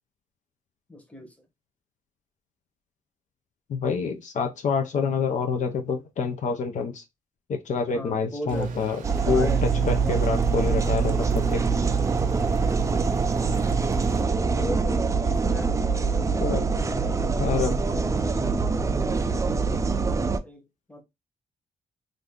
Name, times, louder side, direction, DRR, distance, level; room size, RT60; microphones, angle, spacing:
voice 1, 0.9-1.3 7.9-8.8 9.3-10.2 13.5-14.1 14.5-20.0 20.4-21.0, left 1 dB, 10° left, 1.0 m, -40 dB
voice 2, 3.7-7.0 7.5-9.6 9.8-11.7 16.4-16.6 17.4-17.8, left 5 dB, 60° left, 0.6 m, -27 dB
sound 1, 8.5-14.2, right 6 dB, 75° right, 0.6 m, -32 dB
sound 2, 9.0-20.4, right 4 dB, 20° right, 0.4 m, -24 dB
2.6 x 2.5 x 3.5 m
cardioid pair, 95°, 14 cm